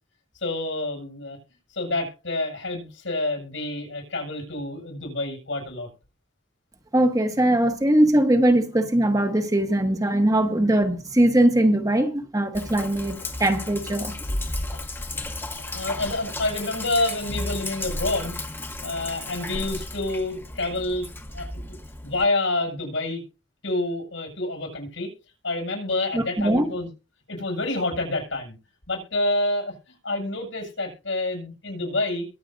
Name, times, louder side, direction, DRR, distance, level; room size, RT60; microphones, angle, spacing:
voice 1, 0.4-1.4 1.7-5.9 14.7-14.8 15.6-18.4 18.8-21.1 21.3-21.8 22.0-23.2 23.6-25.1 25.4-26.9 27.3-28.6 28.9-32.3, left 2 dB, 90° left, 7.2 m, -28 dB
voice 2, 6.9-14.4 26.1-26.7, right 1 dB, 20° right, 1.1 m, -21 dB
Sink (filling or washing), 12.5-22.2, left 2 dB, 10° left, 1.1 m, -33 dB
22.5 x 7.6 x 2.6 m
head